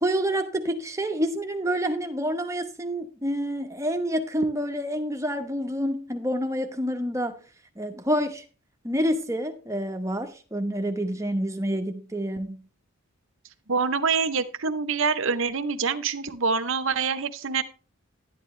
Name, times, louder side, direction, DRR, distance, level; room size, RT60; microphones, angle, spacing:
voice 1, 0.0-7.4 7.8-8.4 8.8-12.6, equal, 15° right, 1.0 m, -28 dB
voice 2, 13.7-17.6, right 5 dB, 60° right, 0.8 m, -25 dB
11.0 x 10.5 x 3.2 m
head